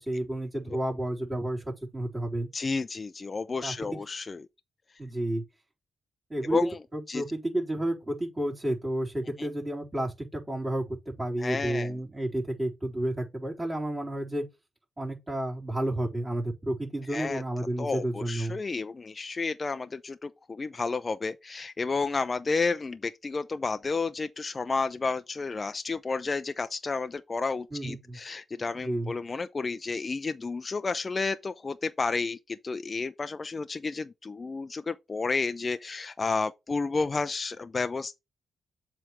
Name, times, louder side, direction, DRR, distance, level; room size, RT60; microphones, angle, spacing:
voice 1, 0.0-2.5 3.6-4.0 5.0-5.4 6.3-14.4 15.0-18.6 27.7-28.2 28.7-29.1, right 1 dB, 25° right, 4.4 m, -31 dB
voice 2, 2.5-4.4 6.5-6.8 7.1-7.2 9.4-9.5 11.4-11.9 17.1-17.4 17.8-38.2, left 4 dB, 40° left, 0.6 m, -31 dB
7.5 x 3.5 x 5.8 m
supercardioid pair, 50°, 0 cm